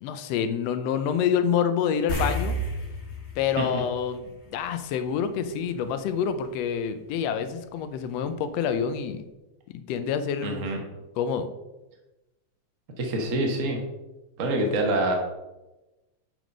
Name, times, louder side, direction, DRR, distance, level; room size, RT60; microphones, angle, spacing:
voice 1, 0.0-2.6 3.4-9.2 9.9-10.7 11.2-11.5, left 7 dB, 75° left, 10 dB, 1.6 m, -27 dB
sound 1, 2.1-4.9 5.2-5.4 8.2-8.3 8.7-8.8, equal, 40° left, 1.0 m, -32 dB
voice 2, 10.4-10.8 13.0-13.8 14.4-15.1, right 1 dB, 70° right, 1 dB, 0.7 m, -26 dB
6.9 x 6.2 x 5.3 m, 1.0 s
omnidirectional pair, 3.4 m